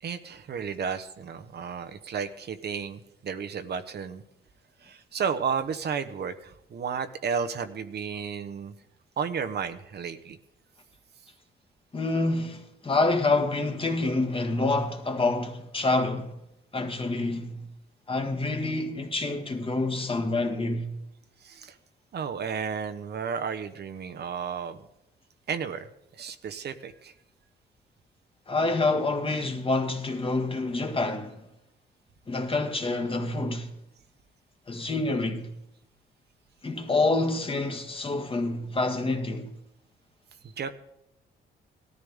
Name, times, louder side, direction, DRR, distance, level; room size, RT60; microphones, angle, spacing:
voice 1, 0.0-4.2 4.8-8.7 9.2-10.4 21.4-21.8 22.1-24.8 25.5-25.9 26.1-27.1 40.4-40.7, right 6 dB, 55° right, 1.1 m, -33 dB
voice 2, 11.9-16.3 16.7-17.7 18.1-21.0 28.5-31.4 32.3-33.7 34.7-35.5 36.6-39.5, left 2 dB, 25° left, 1.9 m, -27 dB
18.0 x 13.5 x 3.6 m
cardioid pair, 90°, 20 cm